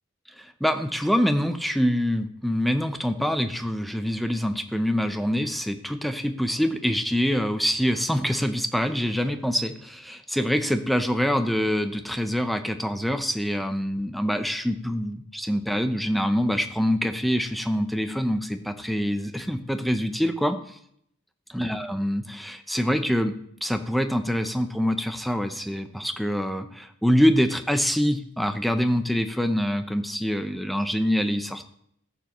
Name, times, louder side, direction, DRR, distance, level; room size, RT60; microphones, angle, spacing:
voice 1, 0.4-20.8 21.5-23.3 23.6-31.6, equal, ahead, 8 dB, 0.6 m, -25 dB
14.0 x 7.1 x 3.0 m, 0.68 s
head